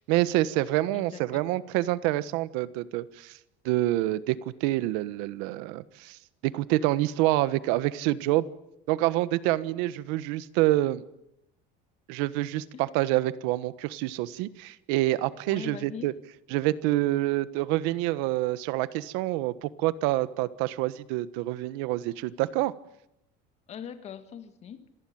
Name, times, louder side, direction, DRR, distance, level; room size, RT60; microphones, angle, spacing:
voice 1, 0.0-3.3 3.6-6.2 6.4-8.4 8.9-11.0 12.1-16.1 16.5-22.7, right 16 dB, 80° right, 16 dB, 1.4 m, -27 dB
voice 2, 0.9-1.4 12.7-12.8 15.5-16.2 23.7-24.9, left 8 dB, 35° left, 10 dB, 2.0 m, -41 dB
26.5 x 18.5 x 8.8 m, 0.82 s
cardioid pair, 165°, 19 cm